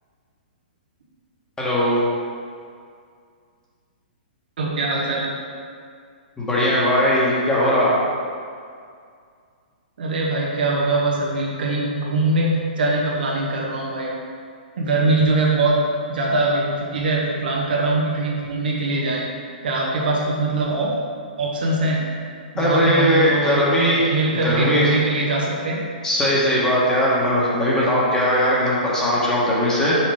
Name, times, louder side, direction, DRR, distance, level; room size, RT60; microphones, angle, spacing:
voice 1, 1.6-2.0 6.4-7.9 22.6-24.0 24.4-24.9 26.0-30.0, equal, 10° left, -7 dB, 1.4 m, -19 dB
voice 2, 4.6-5.3 10.0-14.1 14.8-15.8 16.1-19.3 19.6-20.9 21.4-22.0 22.5-23.7 24.1-25.8, right 2 dB, 70° right, -3 dB, 1.3 m, -22 dB
5.8 x 4.9 x 3.6 m, 2.2 s
hypercardioid pair, 130°, 5 cm